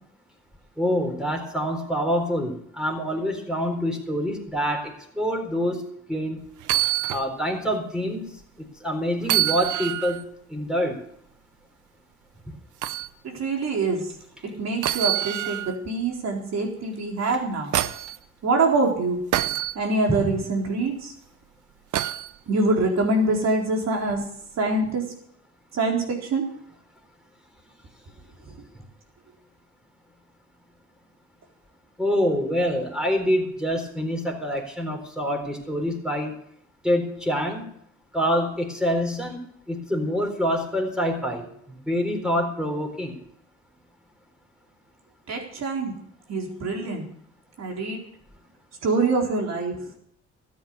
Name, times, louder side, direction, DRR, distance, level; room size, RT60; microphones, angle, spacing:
voice 1, 0.8-5.8 6.1-6.4 7.1-8.3 8.8-10.2 10.5-11.0 20.1-20.4 32.0-36.3 36.8-37.7 38.1-39.4 39.7-43.2, equal, 5° right, 2 dB, 4.2 m, -26 dB
sound 1, 6.6-7.3 7.7-7.8 9.2-10.2 12.8-13.1 14.8-15.8 17.2-18.2 19.3-19.7 21.9-22.3 24.1-24.2, right 14 dB, 80° right, 0.8 m, -26 dB
voice 2, 13.2-14.0 14.4-17.7 18.4-19.2 19.7-21.1 22.5-24.2 24.6-25.0 25.7-26.5 45.3-45.9 46.3-47.1 47.6-48.0 48.8-49.8, right 3 dB, 60° right, 1 dB, 4.1 m, -24 dB
13.5 x 9.6 x 7.1 m, 0.67 s
cardioid pair, 90°, 30 cm